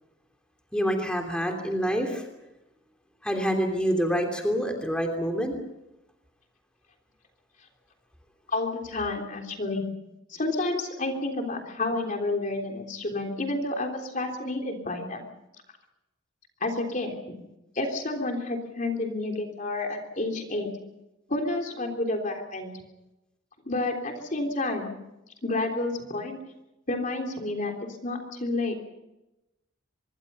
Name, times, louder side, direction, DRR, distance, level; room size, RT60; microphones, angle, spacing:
voice 1, 0.7-2.3 3.2-5.5, equal, 5° left, 3 dB, 3.1 m, -26 dB
voice 2, 8.5-9.9 10.3-15.2 16.6-17.2 17.8-20.7 21.3-22.7 23.7-24.9 25.4-26.4 26.9-27.7 28.0-28.7, left 2 dB, 40° left, 3 dB, 3.4 m, -30 dB
25.0 x 23.0 x 5.6 m, 0.95 s
head